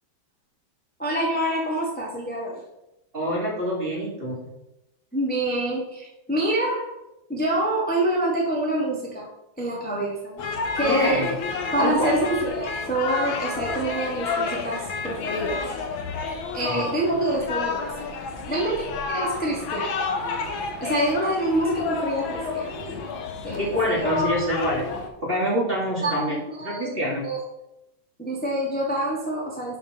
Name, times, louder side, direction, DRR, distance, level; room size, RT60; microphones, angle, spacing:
voice 1, 1.0-2.6 5.1-6.9 7.3-9.3 9.6-10.3 10.7-11.3 11.7-15.6 16.5-18.1 18.5-20.0 20.8-22.8 23.4-24.3 26.0-27.4 28.2-29.8, right 1 dB, 5° left, -4 dB, 1.3 m, -26 dB
voice 2, 3.1-4.5 10.8-11.3 11.8-12.1 16.7-16.8 23.6-24.9 25.2-27.3, equal, 25° right, -4 dB, 2.8 m, -26 dB
sound 1, 10.4-25.1, left 4 dB, 75° left, 1.9 m, -30 dB
11.0 x 4.4 x 5.2 m, 0.90 s
omnidirectional pair, 2.2 m